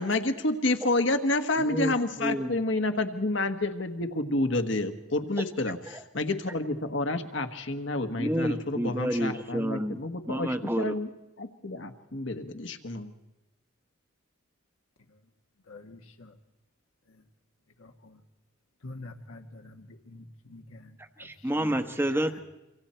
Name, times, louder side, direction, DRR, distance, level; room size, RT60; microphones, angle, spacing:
voice 1, 0.0-11.1 11.4-13.1, left 2 dB, 60° left, 6 dB, 1.5 m, -29 dB
voice 2, 1.6-1.9 2.2-2.5 8.2-10.0 10.3-10.9 21.2-22.4, right 1 dB, 10° right, 8 dB, 1.0 m, -29 dB
voice 3, 15.7-16.3 17.8-18.2 18.8-20.9 21.2-21.3 21.5-21.7 22.3-22.4, left 2 dB, 85° left, 3 dB, 1.5 m, -46 dB
27.5 x 25.0 x 4.5 m, 1.0 s
head